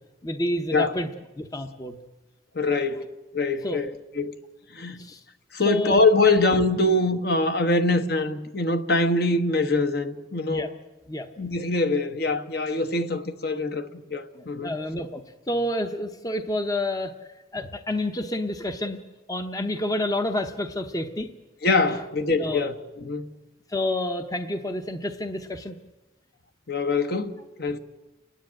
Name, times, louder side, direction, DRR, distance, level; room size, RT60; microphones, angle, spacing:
voice 1, 0.2-1.1 1.4-2.0 2.9-3.0 3.6-3.8 4.9-5.2 5.6-6.0 10.5-10.7 11.1-11.3 14.3-19.0 19.3-21.3 21.9-22.0 22.4-22.7 23.7-25.8 27.1-27.2, left 1 dB, 20° left, 0.8 m, -29 dB
voice 2, 2.5-3.9 4.2-4.3 4.7-5.0 5.5-10.7 11.4-14.7 21.6-23.3 26.7-27.8, left 2 dB, 55° left, 1.2 m, -24 dB
29.0 x 10.5 x 8.8 m
head